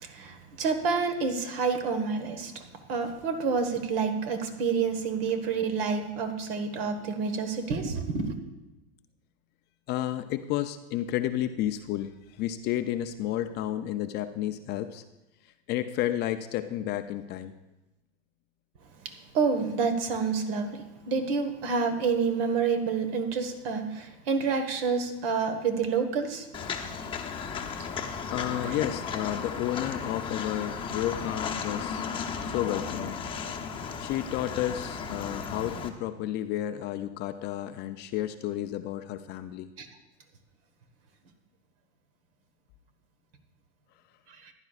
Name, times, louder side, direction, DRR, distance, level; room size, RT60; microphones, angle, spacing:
voice 1, 0.0-8.3 19.0-26.5 27.8-28.1 28.6-28.7 39.8-39.9 44.3-44.5, right 5 dB, 60° right, 8 dB, 1.5 m, -29 dB
voice 2, 9.9-15.0 15.7-17.5 28.3-32.1 32.4-33.2 34.0-39.7, left 12 dB, 30° left, 9 dB, 0.4 m, -31 dB
Walk footsteps, 26.5-35.9, left 6 dB, 15° left, 0.9 m, -35 dB
15.0 x 10.5 x 2.4 m, 1.0 s
hypercardioid pair, 125°, 33 cm